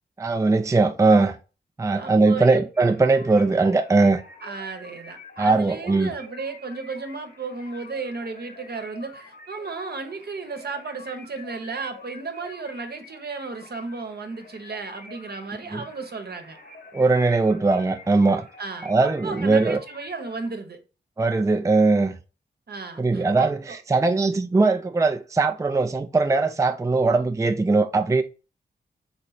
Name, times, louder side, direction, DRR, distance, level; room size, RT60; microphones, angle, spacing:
voice 1, 0.2-1.4 1.8-4.2 5.4-6.1 15.7-15.8 16.9-18.4 18.8-19.8 21.2-22.1 23.0-28.2, right 3 dB, 15° right, 0.4 m, -20 dB
voice 2, 1.9-2.7 4.4-16.6 18.6-20.8 22.7-23.8, right 4 dB, 60° right, 1.0 m, -34 dB
sound 1, 2.7-20.5, left 3 dB, 55° left, 1.2 m, -47 dB
3.9 x 3.2 x 4.1 m
cardioid pair, 45°, 19 cm